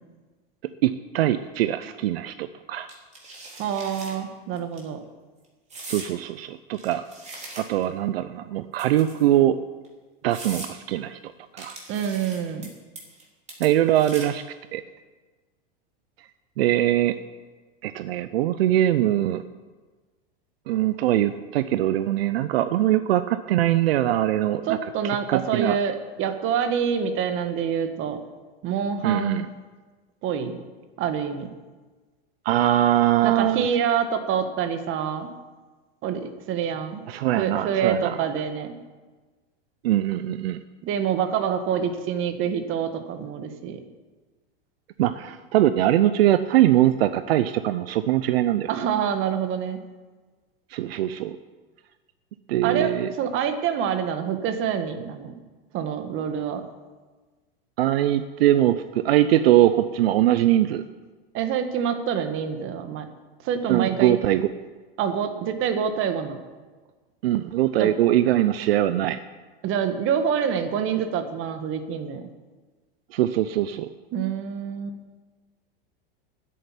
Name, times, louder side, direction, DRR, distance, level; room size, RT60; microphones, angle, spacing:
voice 1, 0.8-2.9 5.9-7.1 7.6-9.6 10.2-11.8 13.6-14.4 14.7-14.8 16.6-17.2 17.8-19.4 20.7-24.8 25.0-25.8 29.0-29.5 32.4-33.7 37.1-38.2 39.8-40.6 45.0-48.7 50.7-51.4 52.5-53.1 57.8-60.8 63.7-64.5 67.2-69.2 73.1-73.9, right 13 dB, 80° right, 12 dB, 0.7 m, -22 dB
sound 1, 2.9-4.1 4.6-4.8 5.7-6.1 6.7-7.9 8.7-9.3 9.8-9.9 10.3-10.7 11.6-12.7 12.9-13.2 13.5-14.4, right 2 dB, 25° right, 3.8 m, -40 dB
voice 2, 3.6-5.0 11.9-12.7 24.6-28.2 28.6-29.4 30.2-30.6 31.0-31.5 33.2-35.3 36.0-37.0 37.3-38.7 40.8-43.8 48.7-49.8 52.6-55.4 55.7-56.6 61.3-63.1 63.4-64.2 65.0-66.4 67.8-67.9 69.6-72.3 74.1-75.0, right 7 dB, 45° right, 8 dB, 1.6 m, -26 dB
10.0 x 8.7 x 9.9 m, 1.3 s
hypercardioid pair, 120°, 30 cm